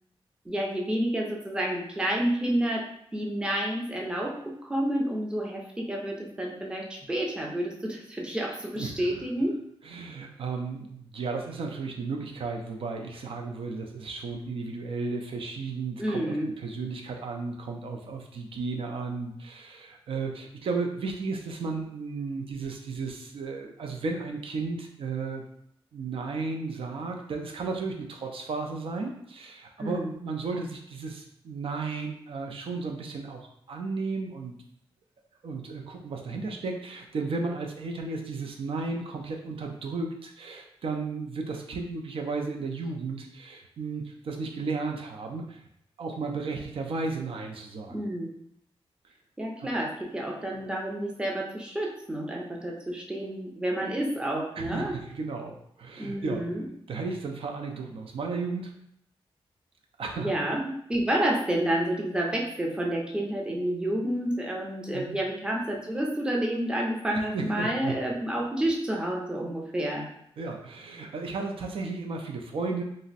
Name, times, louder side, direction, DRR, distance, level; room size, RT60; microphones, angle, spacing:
voice 1, 0.5-2.9 3.1-9.6 16.0-16.5 29.8-30.1 47.9-48.3 49.4-55.0 56.0-56.6 60.2-70.1, right 1 dB, 10° right, -1 dB, 0.5 m, -29 dB
voice 2, 8.8-9.2 9.8-25.4 25.9-34.6 35.4-45.6 46.0-48.0 49.6-49.7 54.6-56.4 56.9-58.7 60.0-60.3 64.9-65.2 67.3-67.9 70.4-72.8, right 4 dB, 65° right, 2 dB, 0.4 m, -34 dB
2.5 x 2.0 x 3.9 m, 0.71 s
wide cardioid pair, 145°, 10 cm